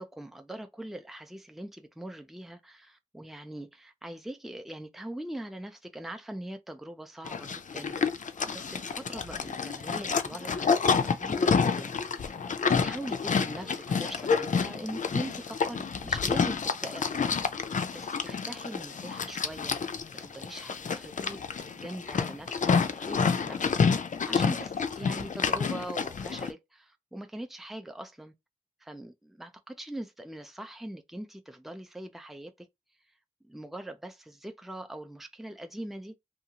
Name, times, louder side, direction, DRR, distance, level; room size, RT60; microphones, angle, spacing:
voice 1, 0.0-12.4 12.8-19.8 20.1-28.3 28.8-32.7 33.4-36.1, right 1 dB, ahead, 0.5 m, -42 dB
Livestock farm animals working animals, 7.2-26.5, left 5 dB, 70° left, 0.4 m, -29 dB
2.7 x 2.3 x 2.8 m
wide cardioid pair, 45°, 13 cm